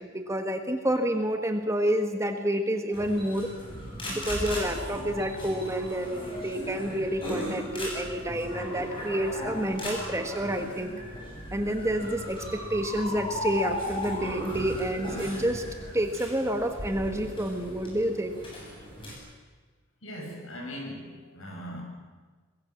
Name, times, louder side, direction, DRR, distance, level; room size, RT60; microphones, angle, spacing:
voice 1, 0.1-3.5 4.1-10.9 11.5-15.6 15.9-18.3, right 1 dB, 15° right, 6 dB, 1.6 m, -29 dB
sound 1, 2.9-19.1, left 1 dB, 25° left, 7.8 m, -37 dB
voice 2, 20.0-21.8, equal, 70° left, 0 dB, 7.7 m, -39 dB
26.0 x 21.5 x 7.4 m, 1.4 s
head